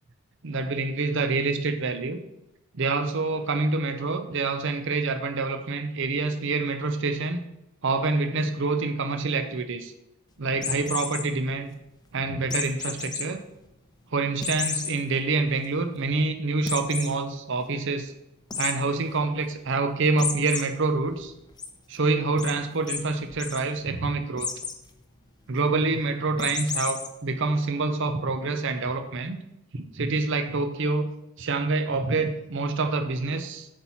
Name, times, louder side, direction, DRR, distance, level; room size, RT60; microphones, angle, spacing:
voice 1, 0.4-2.2 2.7-7.4 7.8-9.9 10.4-11.7 12.1-13.4 14.1-18.1 18.6-21.3 21.9-24.5 25.5-29.4 29.7-31.1 31.4-33.7, right 3 dB, 55° right, 8 dB, 0.6 m, -26 dB
sound 1, 10.6-11.2 12.5-13.2 13.7-13.8 14.4-14.9 15.4-15.5 15.8-15.9 16.7-17.1 18.5-18.7 20.2-20.6 21.1-21.7 22.4-22.5 22.9-23.0 23.3-23.6 24.4-24.8 26.4-27.1, left 5 dB, 20° left, 0.6 m, -31 dB
8.4 x 4.3 x 7.1 m, 0.86 s
head